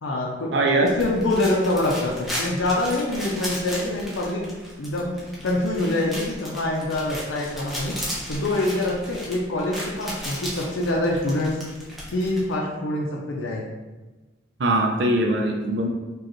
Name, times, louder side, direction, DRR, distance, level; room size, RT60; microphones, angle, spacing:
voice 1, 0.0-0.5 0.8-4.5 4.8-8.0 8.3-11.6 12.1-13.6, left 1 dB, 85° left, -1 dB, 0.5 m, -25 dB
voice 2, 0.5-0.9 14.6-15.9, right 1 dB, 65° right, 2 dB, 0.5 m, -21 dB
sound 1, 0.9-12.5, equal, ahead, 0.7 m, -36 dB
4.8 x 2.3 x 3.0 m, 1.2 s
head